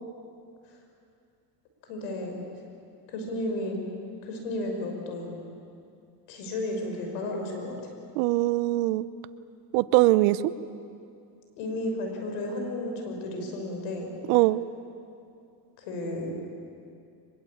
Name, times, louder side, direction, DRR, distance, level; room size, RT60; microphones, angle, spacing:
voice 1, 1.9-2.4 3.1-3.8 4.2-5.3 6.3-7.7 11.6-14.1 15.8-16.4, left 1 dB, 85° left, 2 dB, 6.1 m, -33 dB
voice 2, 8.1-9.1 9.7-10.5 14.3-14.6, right 18 dB, 85° right, 16 dB, 0.9 m, -22 dB
24.0 x 22.0 x 8.7 m, 2.5 s
supercardioid pair, 110°, 45 cm